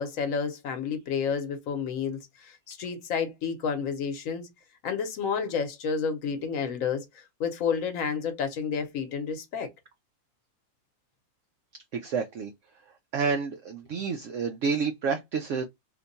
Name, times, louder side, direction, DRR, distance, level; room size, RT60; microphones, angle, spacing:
voice 1, 0.0-4.5 4.8-7.0 7.4-9.7, left 6 dB, 65° left, 1.2 m, -30 dB
voice 2, 11.9-12.5 13.1-15.6, right 5 dB, 70° right, 0.8 m, -29 dB
2.9 x 2.2 x 3.8 m
omnidirectional pair, 1.5 m